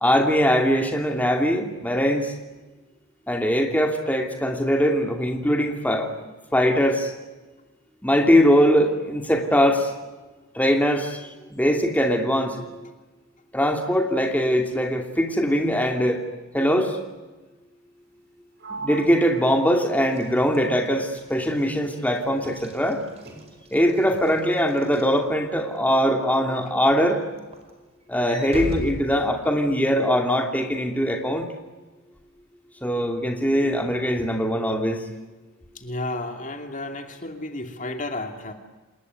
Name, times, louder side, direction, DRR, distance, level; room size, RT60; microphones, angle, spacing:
voice 1, 0.0-2.3 3.3-6.1 6.5-7.1 8.0-9.9 10.5-12.8 13.5-16.3 16.5-17.0 18.7-23.0 23.7-27.2 28.1-31.4 32.8-35.0, equal, 5° left, 3 dB, 2.7 m, -21 dB
Sliding door, 18.6-22.2 22.4-23.8, right 3 dB, 50° right, 6.9 m, -42 dB
Walk footsteps / Slam, 20.0-25.8 26.3-26.6 26.9-29.9, equal, 25° right, 4.8 m, -39 dB
voice 2, 35.7-38.5, left 2 dB, 35° left, 5 dB, 2.6 m, -32 dB
28.5 x 20.5 x 9.6 m, 1.2 s
head